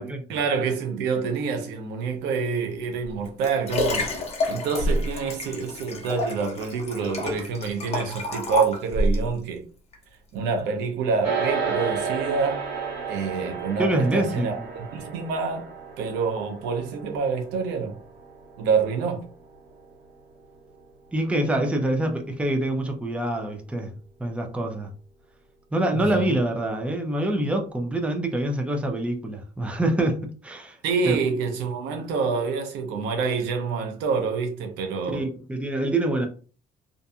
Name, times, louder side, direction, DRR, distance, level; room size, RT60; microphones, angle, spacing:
voice 1, 0.0-4.2 4.5-9.6 10.3-12.6 13.1-15.7 16.0-18.0 18.6-19.2 25.9-26.4 30.8-35.3, right 5 dB, 90° right, 0.7 m, -27 dB
Liquid, 3.0-9.3 9.9-10.0, left 1 dB, 40° left, 0.9 m, -28 dB
sound 1, 11.2-20.7, right 5 dB, 70° right, 1.4 m, -33 dB
voice 2, 13.8-14.7 21.1-23.9 24.2-24.9 25.7-30.8 31.1-31.2 35.1-36.3, right 1 dB, 5° right, 0.5 m, -25 dB
2.6 x 2.6 x 2.3 m
cardioid pair, 110°, 17 cm